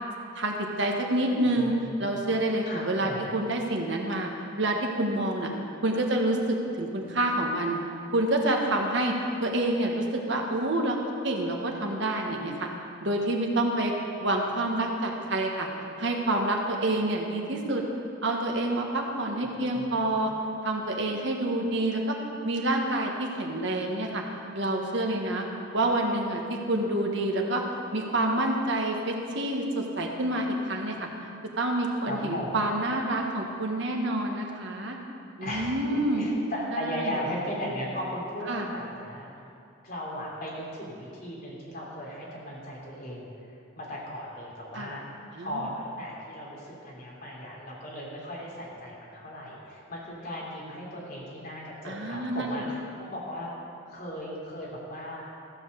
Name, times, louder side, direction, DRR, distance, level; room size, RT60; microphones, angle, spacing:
voice 1, 0.3-1.7 2.0-4.3 4.6-5.5 5.8-7.8 8.1-9.1 9.4-11.0 11.2-12.7 13.0-13.9 14.2-15.7 16.0-17.8 18.2-20.3 20.6-22.2 22.4-24.2 24.5-25.4 25.7-27.6 27.9-31.1 31.6-35.0 35.4-36.2 37.0-37.1 38.5-38.7 44.7-44.9 45.3-45.5 51.8-52.6, right 1 dB, 65° right, 1 dB, 1.5 m, -27 dB
voice 2, 1.5-1.9 2.2-2.3 2.6-3.2 19.5-20.1 32.0-32.5 35.4-39.3 39.8-43.3 43.7-45.0 45.4-53.5 53.9-55.3, left 1 dB, 50° left, -5 dB, 3.2 m, -37 dB
15.0 x 6.2 x 6.8 m, 2.5 s
head